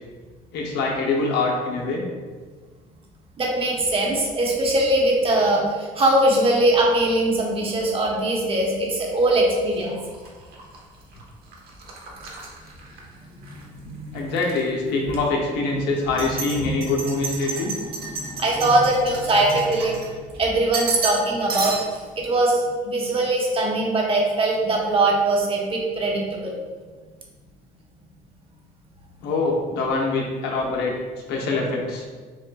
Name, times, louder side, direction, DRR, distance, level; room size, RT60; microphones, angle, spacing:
voice 1, 0.5-2.0 14.1-17.7 29.2-31.0 31.3-32.0, left 3 dB, 85° left, -1 dB, 0.9 m, -24 dB
voice 2, 3.4-9.9 13.4-14.2 16.6-16.7 18.0-20.1 20.4-26.5, right 2 dB, 35° right, -2 dB, 1.0 m, -21 dB
sound 1, 9.7-13.6 14.0-14.6 15.1-15.2 16.0-20.4 20.7-21.2 21.5-22.1, right 4 dB, 65° right, 1.0 m, -33 dB
7.1 x 2.4 x 2.3 m, 1.5 s
cardioid pair, 110°, 17 cm